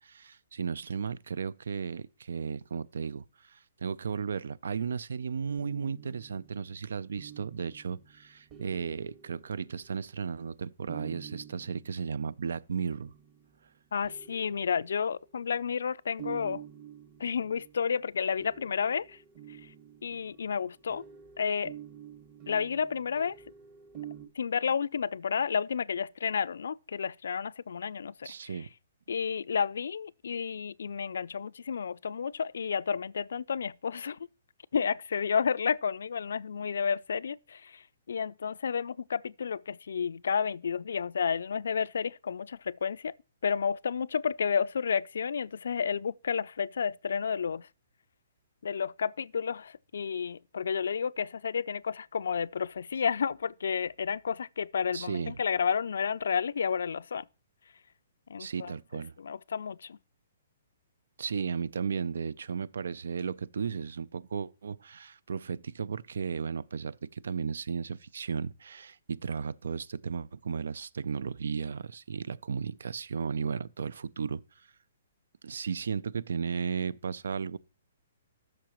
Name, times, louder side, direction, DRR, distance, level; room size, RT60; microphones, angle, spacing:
voice 1, 0.0-13.1 28.2-28.7 54.9-55.3 58.4-59.1 61.2-74.4 75.4-77.6, right 6 dB, 80° right, 0.4 m, -35 dB
sound 1, 5.6-10.1 10.9-13.5 14.0-15.5 16.2-24.3, right 10 dB, 30° right, 1.6 m, -48 dB
voice 2, 13.9-16.6 17.2-19.2 20.0-21.0 21.4-21.7 22.5-23.4 24.4-28.3 29.1-34.2 34.7-43.1 43.4-47.7 48.6-57.2 58.3-58.7 59.2-60.0, left 6 dB, 80° left, 0.3 m, -31 dB
13.0 x 6.2 x 3.0 m
hypercardioid pair, 160°, 0 cm